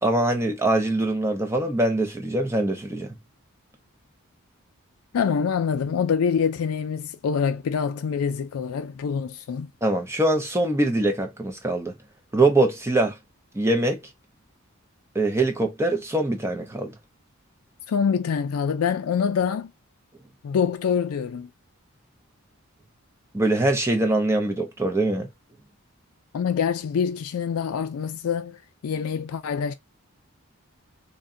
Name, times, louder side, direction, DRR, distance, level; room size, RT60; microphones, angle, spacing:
voice 1, 0.0-3.2 9.8-11.9 12.3-13.2 13.5-14.0 15.1-16.9 23.3-25.3, right 2 dB, 10° right, 0.5 m, -23 dB
voice 2, 5.1-9.7 17.9-19.7 20.4-21.5 26.3-28.6 28.8-29.7, left 6 dB, 80° left, 0.4 m, -25 dB
2.6 x 2.2 x 3.7 m
head